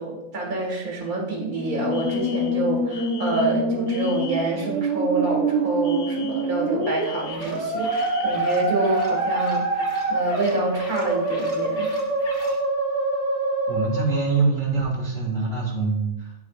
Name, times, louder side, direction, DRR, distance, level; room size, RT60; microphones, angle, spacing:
voice 1, 0.0-9.7 10.1-11.9, right 3 dB, 85° right, -1 dB, 2.3 m, -27 dB
Musical instrument, 1.4-14.5, right 1 dB, 25° right, 1.9 m, -25 dB
Alarm, 1.9-4.6 5.8-8.6, left 7 dB, 55° left, 0.6 m, -42 dB
sound 1, 7.2-12.6, left 1 dB, 40° left, 1.5 m, -43 dB
voice 2, 13.7-16.4, right 4 dB, 60° right, -3 dB, 2.5 m, -24 dB
12.5 x 4.5 x 2.4 m, 0.90 s
omnidirectional pair, 1.5 m